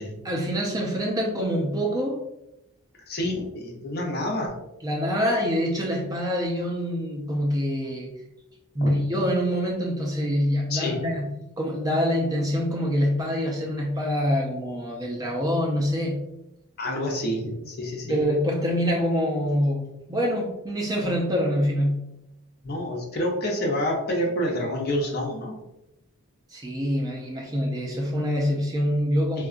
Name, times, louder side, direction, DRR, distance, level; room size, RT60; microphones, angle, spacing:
voice 1, 0.2-2.3 4.8-8.1 8.7-11.3 11.6-16.2 18.1-22.1 26.5-29.5, equal, 15° right, -1 dB, 0.4 m, -25 dB
voice 2, 3.1-4.6 8.8-8.9 10.7-11.0 16.8-18.3 22.6-25.5 29.4-29.5, left 1 dB, 45° left, 0 dB, 0.6 m, -28 dB
3.6 x 2.2 x 2.4 m, 0.88 s
head